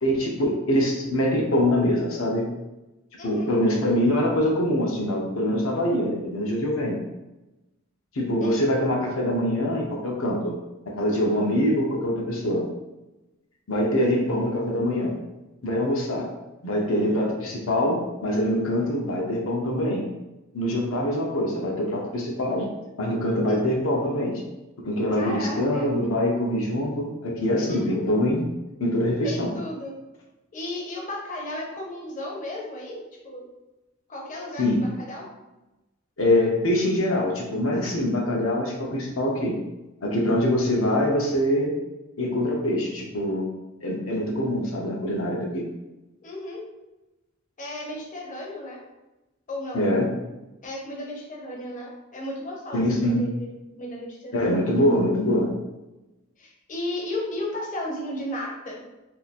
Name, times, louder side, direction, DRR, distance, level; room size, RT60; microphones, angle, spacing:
voice 1, 0.0-2.5 3.2-7.0 8.1-10.5 10.9-12.6 13.7-15.2 15.6-16.3 16.6-20.0 20.5-22.7 23.0-24.4 24.8-28.4 28.8-29.5 34.6-34.8 36.2-39.5 40.0-41.7 42.2-43.5 43.8-45.6 49.7-50.1 52.7-53.2 54.3-55.5, left 1 dB, 70° left, -1 dB, 0.9 m, -24 dB
voice 2, 3.2-3.5 8.4-8.7 23.5-23.6 25.2-25.9 27.7-28.0 29.2-29.9 30.5-33.5 34.1-35.2 46.2-46.6 47.6-48.8 49.5-49.9 50.6-53.5 53.7-54.6 56.4-58.8, left 1 dB, 40° left, -2 dB, 0.8 m, -34 dB
2.8 x 2.5 x 4.1 m, 1.0 s
head